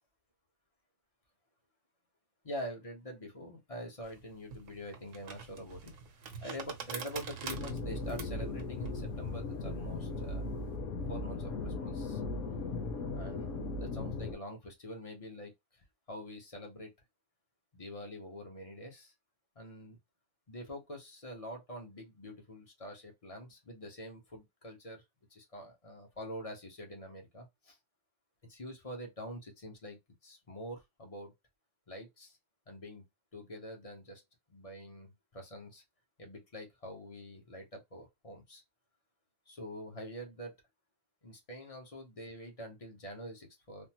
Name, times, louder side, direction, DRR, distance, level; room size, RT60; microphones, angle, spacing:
voice 1, 2.4-5.9 6.4-10.5 11.1-12.2 13.1-16.9 17.7-19.1 19.5-20.0 20.5-25.0 25.3-27.8 28.5-31.3 31.9-32.4 32.7-33.1 33.3-34.2 34.5-35.8 36.2-38.6 39.5-40.5 41.2-43.9, equal, 30° left, 0.9 m, -45 dB
sound 1, 4.0-10.7, right 6 dB, 75° right, 1.0 m, -46 dB
sound 2, 7.5-14.3, left 3 dB, 85° left, 1.1 m, -37 dB
3.5 x 2.0 x 2.8 m
omnidirectional pair, 1.3 m